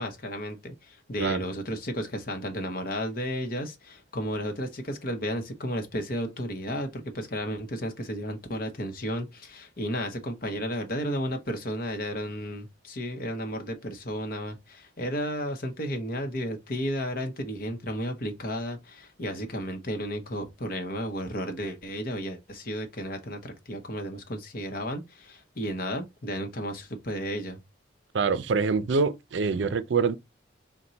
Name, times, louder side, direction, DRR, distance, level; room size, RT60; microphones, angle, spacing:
voice 1, 0.0-27.6, equal, 50° left, 0.9 m, -33 dB
voice 2, 28.1-30.2, right 5 dB, 70° right, 0.4 m, -25 dB
4.3 x 2.2 x 3.9 m
head